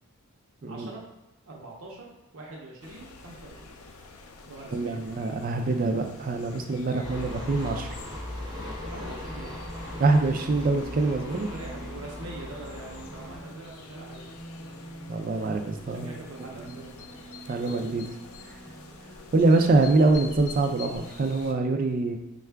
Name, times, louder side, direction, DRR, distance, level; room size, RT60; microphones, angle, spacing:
voice 1, 0.7-1.0 1.5-3.7 4.5-5.0 8.9-9.5 11.2-14.3 15.9-17.2, right 2 dB, 75° right, -2 dB, 0.7 m, -43 dB
sound 1, 2.8-21.5, left 4 dB, 80° left, 0.4 m, -47 dB
voice 2, 4.7-7.9 10.0-11.5 15.1-16.1 16.6-16.7 17.5-18.1 19.3-22.2, right 3 dB, 40° right, 4 dB, 0.3 m, -24 dB
sound 2, 7.0-13.4, left 1 dB, 20° right, 0.7 m, -38 dB
sound 3, 8.8-20.8, right 1 dB, 20° left, 0.9 m, -46 dB
4.5 x 2.3 x 3.3 m, 0.95 s
head